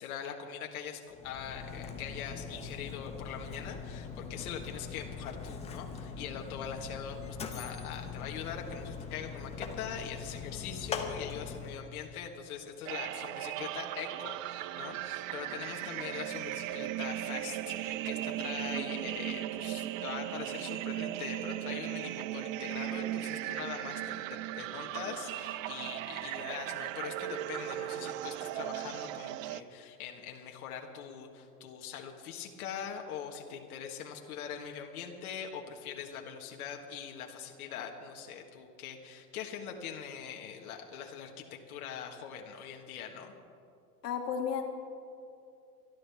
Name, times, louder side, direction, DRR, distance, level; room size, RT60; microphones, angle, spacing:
voice 1, 0.0-43.3, left 8 dB, 65° left, 2 dB, 1.7 m, -42 dB
Mechanisms, 1.1-11.9, left 5 dB, 15° left, 0.8 m, -42 dB
sound 1, 12.8-29.6, right 14 dB, 60° right, 0.6 m, -37 dB
voice 2, 44.0-44.6, left 7 dB, 85° left, 3 dB, 1.7 m, -32 dB
25.5 x 12.0 x 3.5 m, 2.6 s
supercardioid pair, 145°, 46 cm